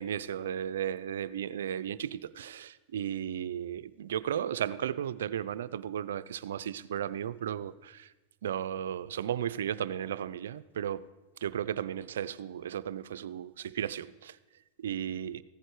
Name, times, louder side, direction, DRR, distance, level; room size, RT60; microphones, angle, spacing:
voice 1, 0.0-8.1 8.4-11.0 11.4-14.4 14.8-15.4, right 9 dB, 85° right, 0.5 m, -35 dB
15.0 x 10.0 x 4.8 m
hypercardioid pair, 110°, 0 cm